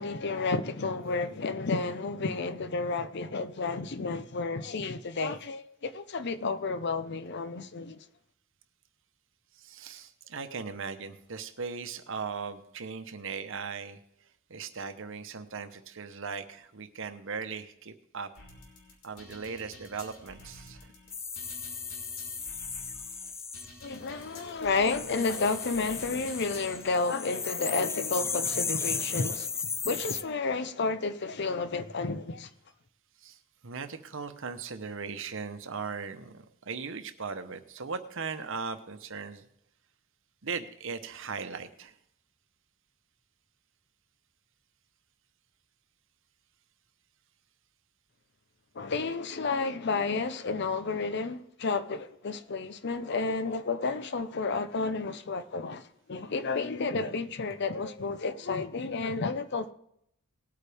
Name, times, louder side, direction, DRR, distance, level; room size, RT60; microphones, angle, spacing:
voice 1, 0.0-8.0 23.8-32.5 48.7-59.7, left 4 dB, 55° left, 0.7 m, -31 dB
voice 2, 9.5-18.3 19.0-20.9 33.2-39.5 40.4-42.0, right 5 dB, 65° right, 1.0 m, -38 dB
sound 1, 18.4-27.0, left 1 dB, 90° left, 3.1 m, -50 dB
sound 2, 21.1-23.7 24.7-30.2, left 5 dB, 15° left, 0.3 m, -35 dB
19.0 x 8.6 x 3.5 m
head